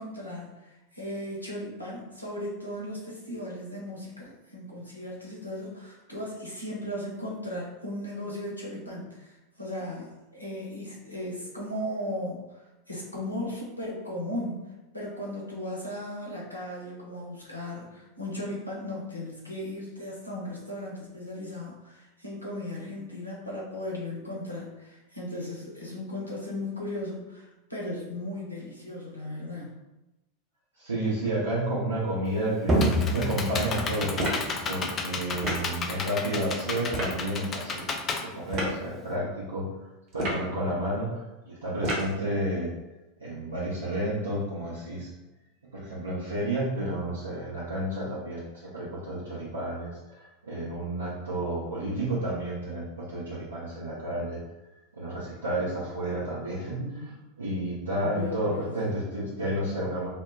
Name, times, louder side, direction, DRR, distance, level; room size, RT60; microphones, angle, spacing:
voice 1, 0.0-14.6 14.9-29.7 56.8-57.2 58.0-58.7, left 1 dB, 90° left, -4 dB, 0.6 m, -36 dB
voice 2, 30.8-34.2 34.7-37.9 38.2-39.7 40.1-42.7 43.2-45.1 45.7-54.4 54.9-57.1 57.4-60.1, right 1 dB, 80° right, -8 dB, 0.6 m, -31 dB
Computer keyboard, 32.3-39.1, left 4 dB, 30° left, 0.3 m, -33 dB
sound 1, 32.7-38.1, equal, 15° right, 0.6 m, -31 dB
sound 2, 34.2-34.5 35.4-35.7 36.9-37.2 38.5-38.8 40.1-40.5 41.8-42.2, right 1 dB, 45° right, 0.9 m, -30 dB
2.1 x 2.1 x 3.7 m, 1.0 s
figure-of-eight pair, 85°, 0 cm